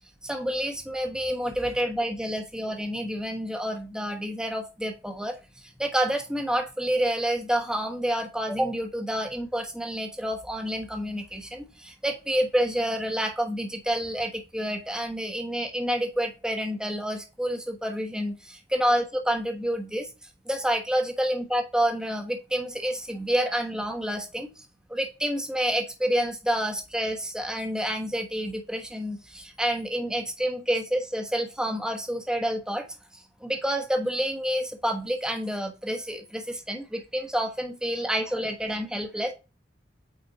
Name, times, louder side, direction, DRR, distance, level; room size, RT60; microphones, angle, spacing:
voice 1, 0.2-20.1 20.4-32.8 33.1-39.3, equal, 5° right, 2 dB, 1.2 m, -28 dB
8.9 x 4.3 x 4.1 m, 0.30 s
head